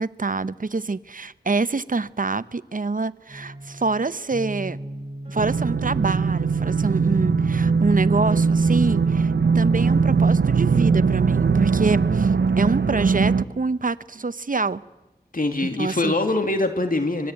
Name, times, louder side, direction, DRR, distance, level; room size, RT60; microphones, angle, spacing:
voice 1, 0.0-4.8 5.3-14.8 15.6-16.1, right 3 dB, 55° right, 16 dB, 0.8 m, -26 dB
sound 1, 3.3-12.6, right 1 dB, 35° right, 6.0 m, -37 dB
sound 2, 5.4-13.4, right 5 dB, 85° right, 0.8 m, -20 dB
voice 2, 15.3-17.3, left 2 dB, 55° left, 6 dB, 2.3 m, -23 dB
25.5 x 21.0 x 8.9 m, 1.0 s
wide cardioid pair, 50°, 17 cm